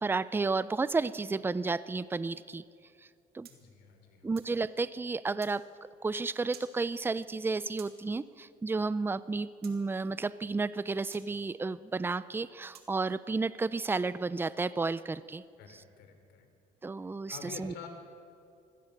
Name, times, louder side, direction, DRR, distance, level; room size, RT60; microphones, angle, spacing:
voice 1, 0.0-2.6 3.3-3.5 4.2-5.6 6.0-15.4 16.8-17.7, right 3 dB, 15° right, 16 dB, 0.5 m, -32 dB
sound 1, 3.4-4.6 5.4-5.6 6.5-6.7 7.8-8.0 9.6-9.8 11.1-11.3 12.7-12.9, right 9 dB, 70° right, 2.3 m, -52 dB
voice 2, 3.5-4.3 15.6-16.5 17.3-17.9, left 5 dB, 80° left, 6 dB, 3.6 m, -48 dB
24.0 x 17.0 x 6.6 m, 2.4 s
cardioid pair, 110°, 17 cm